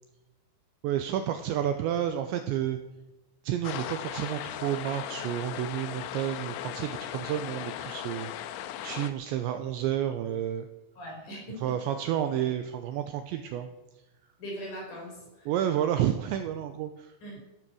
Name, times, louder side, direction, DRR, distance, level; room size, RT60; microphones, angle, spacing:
voice 1, 0.8-2.8 3.4-10.7 11.6-13.7 15.5-17.1, right 10 dB, 80° right, 7 dB, 2.7 m, -30 dB
sound 1, 3.6-9.1, left 11 dB, 80° left, 2.9 m, -38 dB
voice 2, 11.0-11.7 14.4-15.5 17.2-17.4, equal, 40° left, -1 dB, 5.9 m, -40 dB
14.0 x 13.0 x 6.3 m, 1.0 s
omnidirectional pair, 5.9 m